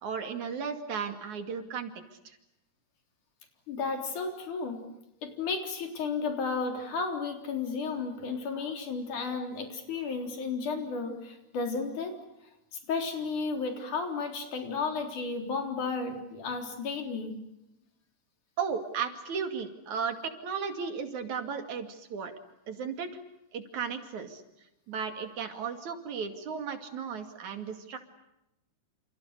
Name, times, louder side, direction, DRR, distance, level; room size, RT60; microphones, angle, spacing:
voice 1, 0.0-1.9 2.3-2.4 18.6-22.3 22.7-23.1 23.5-24.4 24.9-28.0, right 6 dB, 75° right, 7 dB, 3.8 m, -35 dB
voice 2, 3.7-4.9 5.2-12.2 12.9-17.4, left 4 dB, 85° left, 4 dB, 5.2 m, -33 dB
29.5 x 28.5 x 6.8 m, 0.89 s
omnidirectional pair, 3.4 m